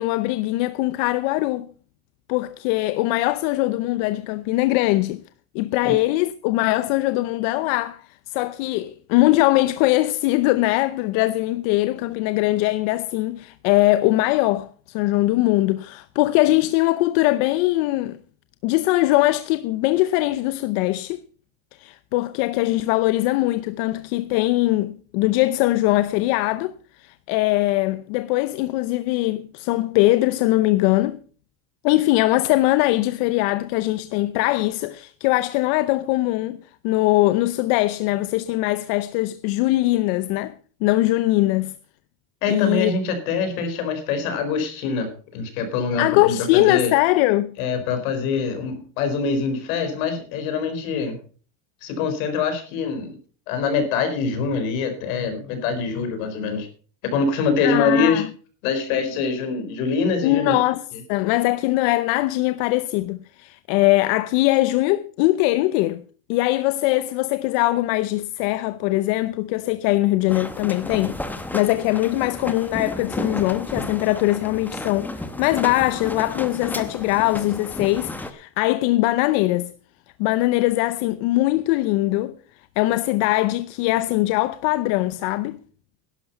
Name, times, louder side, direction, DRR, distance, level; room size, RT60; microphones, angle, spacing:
voice 1, 0.0-1.7 2.3-5.2 5.5-18.2 18.6-21.2 21.8-26.7 27.0-31.2 31.8-40.5 40.8-41.7 42.5-42.9 46.0-47.5 57.6-58.3 60.2-60.8 61.1-66.0 66.3-71.2 71.5-79.7 80.2-82.4 82.8-85.6, left 18 dB, 65° left, 0.8 m, -21 dB
voice 2, 42.4-46.9 47.6-51.2 51.8-53.2 53.5-56.7 57.1-58.2 58.6-60.6, left 5 dB, 85° left, 4.4 m, -24 dB
sound 1, 70.3-78.3, left 1 dB, 5° left, 0.9 m, -32 dB
12.0 x 11.5 x 5.5 m
cardioid pair, 165°, 41 cm